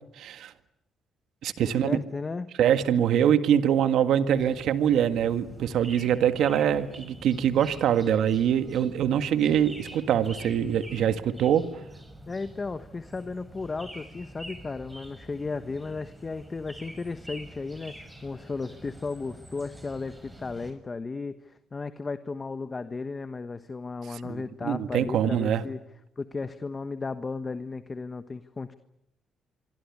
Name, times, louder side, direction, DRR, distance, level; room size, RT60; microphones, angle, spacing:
voice 1, 0.2-0.5 1.4-2.0 2.6-11.7 24.1-25.6, right 9 dB, 75° right, 1.8 m, -24 dB
voice 2, 1.6-2.5 12.3-25.8 26.2-28.7, left 4 dB, 30° left, 1.2 m, -35 dB
sound 1, 4.3-20.7, right 1 dB, 10° right, 6.2 m, -46 dB
25.5 x 24.0 x 9.8 m
cardioid pair, 90°, 0 cm